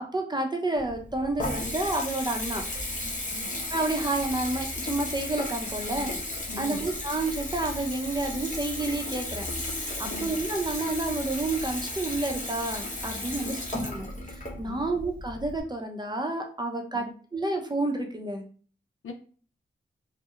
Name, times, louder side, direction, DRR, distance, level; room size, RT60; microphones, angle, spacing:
voice 1, 0.1-2.6 3.7-6.1 6.6-18.4, right 2 dB, 20° right, 2 dB, 0.6 m, -30 dB
Water tap faucet / Bathtub (filling or washing) / Trickle dribble, 0.7-15.6, left 1 dB, 35° left, 0.9 m, -34 dB
voice 2, 6.5-6.8 10.0-10.3 13.3-13.6 14.7-14.9 16.9-17.1 19.0-19.1, left 2 dB, 85° left, 4 dB, 0.5 m, -41 dB
2.7 x 2.1 x 2.3 m, 0.41 s
cardioid pair, 40°, 21 cm